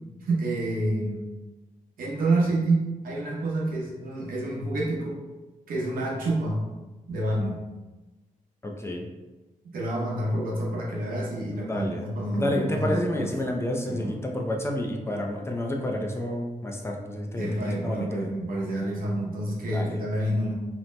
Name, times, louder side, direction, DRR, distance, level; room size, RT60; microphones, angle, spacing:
voice 1, 0.2-1.2 2.0-5.2 5.7-6.6 7.1-7.6 9.7-13.3 13.9-14.1 17.4-20.5, right 1 dB, 80° right, -3 dB, 0.7 m, -28 dB
voice 2, 8.6-9.1 11.7-12.0 12.4-18.2 19.7-19.9, left 1 dB, 20° left, 0 dB, 0.4 m, -30 dB
2.8 x 2.0 x 3.1 m, 1.1 s
cardioid pair, 100°, 15 cm